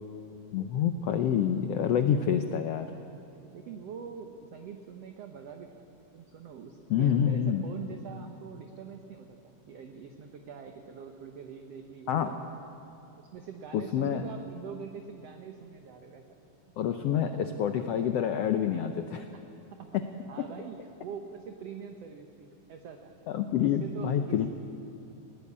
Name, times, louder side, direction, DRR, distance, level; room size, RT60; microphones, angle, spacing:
voice 1, 0.5-2.9 6.9-7.6 12.1-12.3 13.7-14.2 16.8-19.2 19.9-20.0 23.3-24.5, left 8 dB, 90° left, 7 dB, 1.4 m, -27 dB
voice 2, 3.5-5.8 6.1-12.5 13.2-16.2 19.7-20.0 20.3-23.1 23.6-24.5, right 7 dB, 65° right, 4 dB, 1.8 m, -44 dB
19.5 x 18.0 x 8.6 m, 3.0 s
omnidirectional pair, 3.9 m